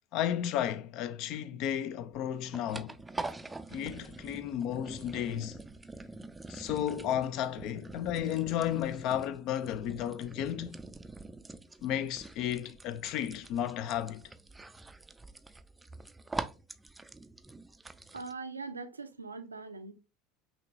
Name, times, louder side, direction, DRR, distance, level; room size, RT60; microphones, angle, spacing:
voice 1, 0.1-3.0 3.7-5.6 6.5-10.8 11.8-14.2, left 10 dB, 50° left, 0.4 m, -33 dB
sound 1, 2.0-18.3, right 2 dB, 10° right, 0.4 m, -45 dB
voice 2, 18.1-19.9, right 4 dB, 85° right, 0.5 m, -41 dB
5.8 x 2.9 x 2.5 m
figure-of-eight pair, 70°, 0 cm